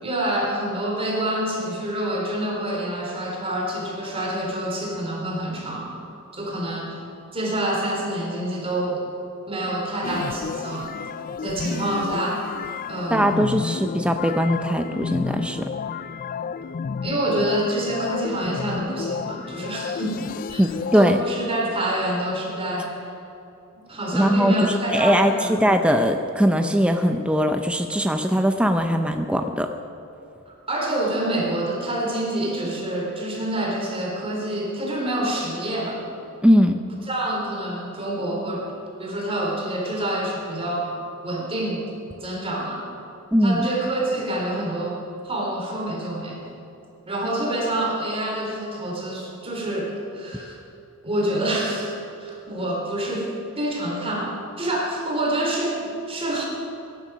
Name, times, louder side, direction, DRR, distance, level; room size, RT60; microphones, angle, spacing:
voice 1, 0.0-5.9 6.3-7.0 7.3-9.0 9.5-10.9 11.4-12.4 12.9-13.3 17.0-20.2 20.5-20.6 20.9-23.0 23.9-25.5 30.7-36.0 37.0-38.6 39.0-40.9 41.2-41.9 42.2-42.8 43.4-45.0 45.2-46.4 47.1-50.6 51.0-51.9 52.2-53.3 53.6-56.5, right 1 dB, 25° right, -2 dB, 3.8 m, -27 dB
sound 1, 10.0-21.1, left 6 dB, 40° left, 0.3 m, -31 dB
voice 2, 13.1-15.7 20.6-21.2 24.1-25.3 25.6-29.7 36.4-36.8 43.3-43.7, equal, 5° right, 5 dB, 0.6 m, -20 dB
20.5 x 11.5 x 6.3 m, 2.8 s
head